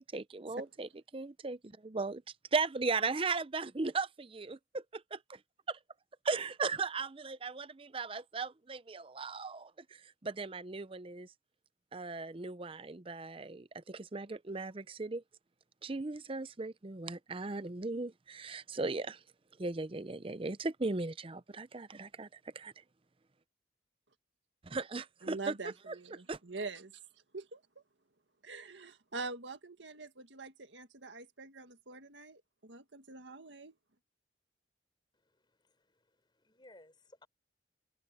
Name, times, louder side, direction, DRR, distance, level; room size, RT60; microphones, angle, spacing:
voice 1, 0.0-2.2 2.5-5.4 5.7-5.8 6.2-11.3 11.9-15.2 15.8-19.2 19.6-22.3 22.5-22.7 24.7-25.5 25.9-26.0 26.3-26.4, right 3 dB, 30° right, 0.6 m, -37 dB
voice 2, 25.2-27.0 27.3-27.6 28.4-33.7, right 3 dB, 85° right, 1.8 m, -45 dB
voice 3, 35.1-37.3, left 1 dB, 25° left, 4.8 m, -61 dB
open air
head